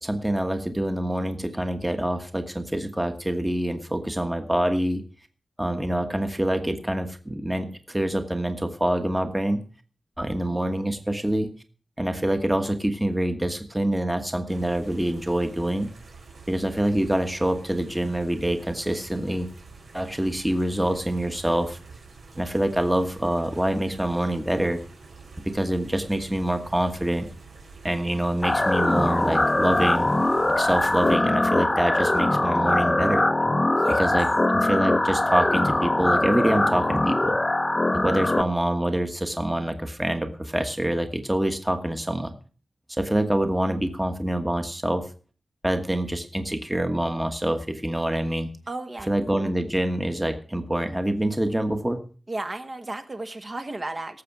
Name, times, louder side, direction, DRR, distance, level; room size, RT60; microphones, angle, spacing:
voice 1, 0.0-5.0 5.6-9.6 10.2-11.5 12.0-15.9 16.5-19.5 19.9-21.8 22.3-24.8 25.5-27.3 27.8-30.1 30.6-33.2 34.0-37.4 38.0-42.3 42.9-45.1 45.6-48.5 49.1-52.0, right 1 dB, 10° right, 7 dB, 1.4 m, -26 dB
sound 1, 14.5-31.2, right 4 dB, 75° right, 4.6 m, -47 dB
sound 2, 28.4-38.4, left 2 dB, 20° left, 0.8 m, -22 dB
voice 2, 48.7-49.1 52.3-54.2, right 2 dB, 30° right, 7 dB, 1.3 m, -33 dB
18.0 x 7.7 x 6.0 m, 0.40 s
wide cardioid pair, 135°, 0 cm